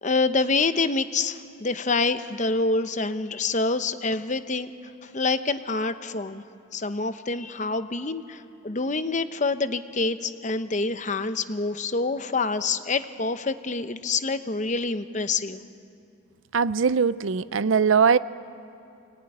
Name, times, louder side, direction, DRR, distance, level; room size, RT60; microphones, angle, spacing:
voice 1, 0.0-4.7 5.0-6.4 6.7-15.6, left 3 dB, 35° left, 11 dB, 0.8 m, -26 dB
voice 2, 16.5-18.2, right 6 dB, 75° right, 16 dB, 0.5 m, -21 dB
25.5 x 19.0 x 9.9 m, 2.5 s
head